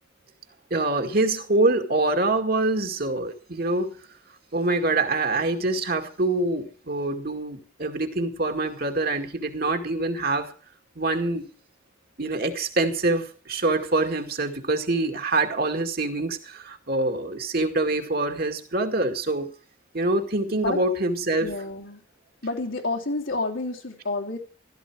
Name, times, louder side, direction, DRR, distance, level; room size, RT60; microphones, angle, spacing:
voice 1, 0.7-4.0 4.5-10.5 11.0-11.5 12.2-19.5 19.9-21.5, right 2 dB, 50° right, 5 dB, 2.2 m, -25 dB
voice 2, 20.5-20.8 21.4-22.0 22.4-24.4, left 2 dB, 80° left, -1 dB, 3.1 m, -29 dB
15.5 x 13.5 x 4.9 m, 0.39 s
head